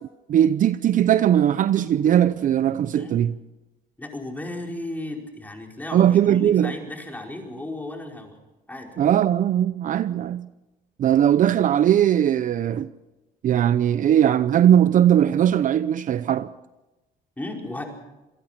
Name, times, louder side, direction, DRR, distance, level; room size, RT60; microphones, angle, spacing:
voice 1, 0.3-3.3 5.9-6.7 9.0-10.5 11.0-12.9 13.4-16.5, right 10 dB, 50° right, 0.7 m, -19 dB
voice 2, 4.0-8.3 8.7-9.0 17.4-17.8, left 1 dB, 10° left, 4.9 m, -34 dB
27.0 x 19.0 x 5.9 m
cardioid pair, 110°, 17 cm